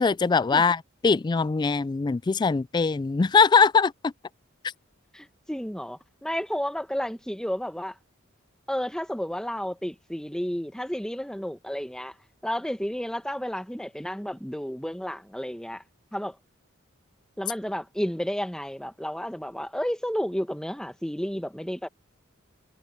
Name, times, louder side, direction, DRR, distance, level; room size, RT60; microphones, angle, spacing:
voice 1, 0.0-4.1, left 5 dB, 20° left, 0.3 m, -22 dB
voice 2, 5.1-7.9 8.7-12.1 12.4-15.8 16.1-16.4 17.4-21.9, equal, 5° left, 1.5 m, -31 dB
head